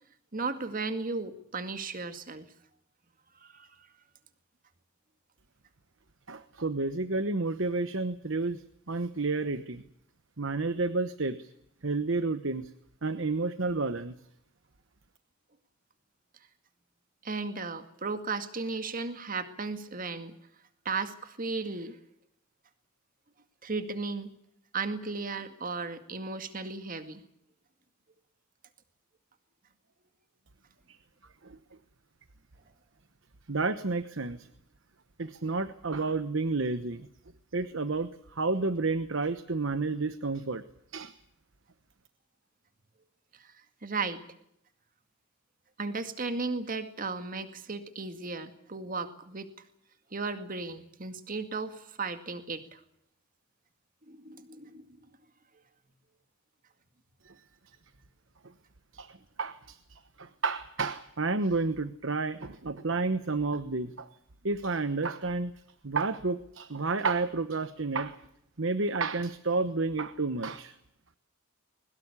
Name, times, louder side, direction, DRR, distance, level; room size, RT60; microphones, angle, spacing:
voice 1, 0.3-2.5 3.4-3.8 17.2-20.3 20.9-22.0 23.6-24.3 24.7-27.2 43.4-43.5 43.8-44.3 45.8-49.5 50.1-52.8 54.1-54.9, right 4 dB, 45° right, 9 dB, 2.1 m, -35 dB
voice 2, 6.3-9.8 10.4-11.5 11.8-12.7 13.0-14.1 30.9-31.0 31.4-31.6 33.5-34.5 35.2-37.1 37.5-40.6 40.9-41.1 57.2-57.4 58.9-64.1 64.4-65.5 65.8-68.2 68.6-70.7, right 3 dB, 65° right, 11 dB, 1.1 m, -31 dB
22.0 x 19.5 x 8.4 m, 0.74 s
head